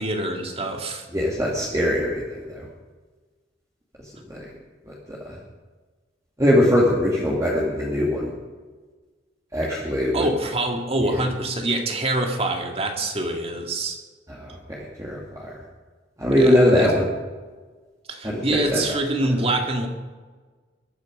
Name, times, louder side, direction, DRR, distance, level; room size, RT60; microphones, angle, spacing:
voice 1, 0.0-1.0 10.1-14.0 16.3-16.9 18.1-19.9, right 2 dB, 35° right, 3 dB, 2.1 m, -25 dB
voice 2, 1.1-2.5 4.3-4.4 6.4-8.3 9.5-10.3 11.0-11.1 14.4-14.5 15.0-15.2 16.2-17.1 18.2-18.8, left 1 dB, 20° right, -5 dB, 2.4 m, -20 dB
22.0 x 9.7 x 5.3 m, 1.4 s
head